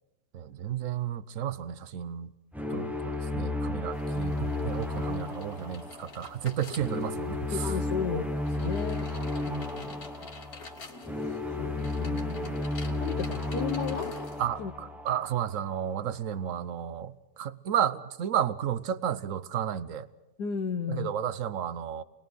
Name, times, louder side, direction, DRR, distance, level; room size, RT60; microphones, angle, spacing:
voice 1, 0.3-2.3 2.7-7.7 14.4-20.1 20.9-22.0, right 9 dB, 55° right, 15 dB, 1.2 m, -32 dB
sound 1, 2.5-15.6, left 2 dB, ahead, 1.0 m, -33 dB
sound 2, 3.9-14.4, left 4 dB, 55° left, 2.4 m, -46 dB
voice 2, 7.5-8.3 8.6-9.1 9.5-10.0 11.2-12.6 13.0-14.1 14.6-14.7 20.4-21.1, left 7 dB, 75° left, 4 dB, 1.6 m, -34 dB
28.0 x 21.0 x 6.3 m, 1.0 s
omnidirectional pair, 1.8 m